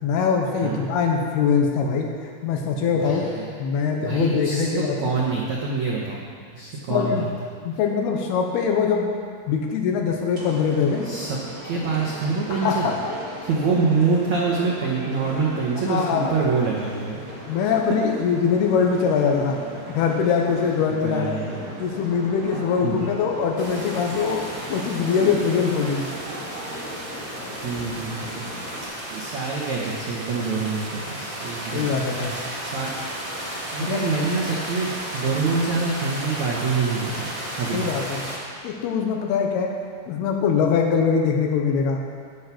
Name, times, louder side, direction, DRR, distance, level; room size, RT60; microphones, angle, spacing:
voice 1, 0.0-2.1 2.4-3.3 3.6-5.0 6.9-7.2 7.6-9.1 9.5-11.1 12.6-13.1 15.9-16.2 17.5-19.6 19.9-21.4 21.8-24.4 24.7-26.1 31.7-32.3 33.8-34.1 37.7-38.2 38.6-39.7 40.1-42.0, left 6 dB, 75° left, 1 dB, 2.6 m, -22 dB
voice 2, 2.9-3.5 4.0-4.7 5.0-6.2 6.5-7.3 11.0-11.4 11.6-12.9 13.4-17.2 21.0-21.6 22.8-23.0 27.3-28.5 28.8-31.9 32.4-32.9 33.7-37.9, right 4 dB, 90° right, -3 dB, 1.6 m, -26 dB
sound 1, 10.3-28.8, equal, 30° right, 1.8 m, -37 dB
sound 2, 23.6-38.4, right 1 dB, 60° right, 0.5 m, -34 dB
10.5 x 9.9 x 6.0 m, 2.2 s
omnidirectional pair, 5.1 m